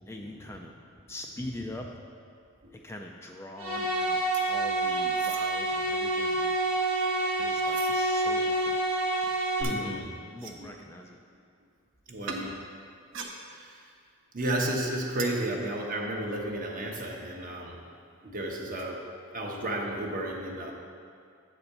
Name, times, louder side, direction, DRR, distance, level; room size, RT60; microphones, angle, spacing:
voice 1, 0.1-0.8 1.1-1.9 2.7-4.2 4.5-6.5 7.4-8.8 9.7-10.0 10.3-11.2, left 1 dB, 10° left, 1 dB, 0.4 m, -42 dB
sound 1, 3.6-9.6, right 2 dB, 80° right, 1.3 m, -28 dB
sound 2, 4.3-4.8 5.1-5.5 6.2-8.0 8.5-8.6 9.6-9.8 10.4-10.7 12.3-12.5 13.0-13.9 14.2-17.3 17.6-17.7 17.9-18.1 18.8-18.9, right 4 dB, 60° right, 0.8 m, -44 dB
voice 2, 9.6-10.1 12.1-12.5 13.5-13.7 14.3-17.8 18.2-19.0 19.3-20.7, right 1 dB, 40° right, 0 dB, 1.0 m, -32 dB
8.8 x 4.2 x 6.7 m, 2.3 s
head